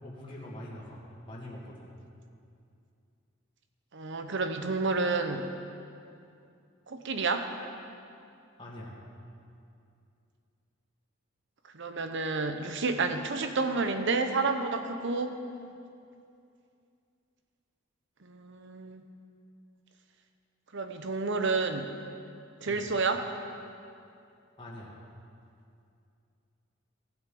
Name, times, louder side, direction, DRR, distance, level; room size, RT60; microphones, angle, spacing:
voice 1, 0.0-1.9 8.6-9.0 22.7-22.9 24.6-25.0, left 1 dB, 25° left, -6 dB, 2.1 m, -44 dB
voice 2, 3.9-5.5 6.9-7.5 11.7-15.4 18.2-19.0 20.7-22.0 22.6-23.3, right 3 dB, 60° right, 7 dB, 0.9 m, -30 dB
16.0 x 8.1 x 5.4 m, 2.5 s
head